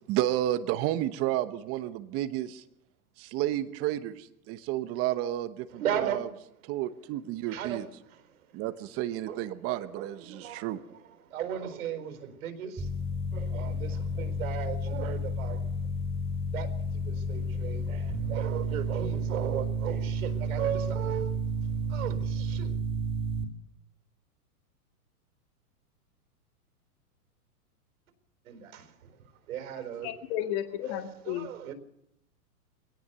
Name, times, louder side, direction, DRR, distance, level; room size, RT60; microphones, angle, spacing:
voice 1, 0.0-2.6 3.2-6.3 6.6-7.8 8.5-10.8, right 13 dB, 30° right, 12 dB, 1.0 m, -31 dB
voice 2, 5.7-6.3 7.5-8.4 9.3-12.9 13.3-15.7 16.5-21.4 21.8-22.8 28.4-30.5 30.8-31.7, right 9 dB, 70° right, 7 dB, 4.4 m, -37 dB
sound 1, 12.8-23.4, right 1 dB, 10° right, 3.2 m, -31 dB
voice 3, 30.0-31.5, left 11 dB, 45° left, 6 dB, 1.9 m, -33 dB
22.0 x 18.0 x 6.8 m, 0.75 s
hypercardioid pair, 135°, 45 cm